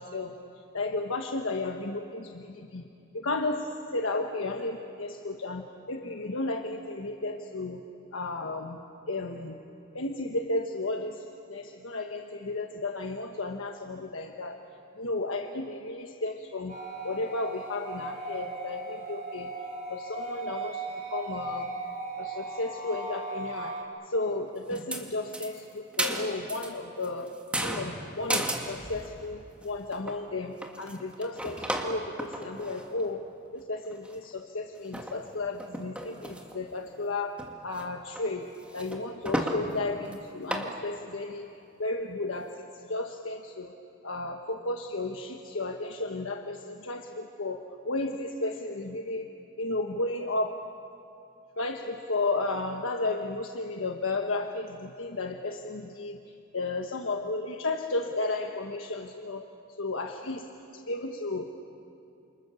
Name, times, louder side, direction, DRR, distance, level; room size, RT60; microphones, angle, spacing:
voice 1, 0.0-2.9 3.1-7.8 8.1-8.8 9.1-9.6 9.9-14.6 14.9-16.7 17.0-19.5 19.9-21.7 22.2-27.3 27.6-33.2 33.5-38.5 38.7-41.5 41.8-43.7 44.0-49.3 49.6-50.6 51.6-56.2 56.5-59.5 59.8-60.5 60.7-61.5, left 2 dB, 85° left, 3 dB, 1.3 m, -33 dB
sound 1, 16.7-23.8, right 2 dB, 40° right, 4.1 m, -37 dB
sound 2, 24.7-25.0 25.3-26.7 27.0-29.2 29.6-29.7 29.9-30.2 30.6-33.1 33.6-33.7 33.9-34.4 34.8-35.2 35.6-36.6 36.9-37.0 37.4-37.9 38.2-38.3 38.6-39.6 40.1-40.2 40.5-40.7, right 1 dB, 5° right, 2.2 m, -34 dB
29.0 x 28.0 x 7.0 m, 2.7 s
head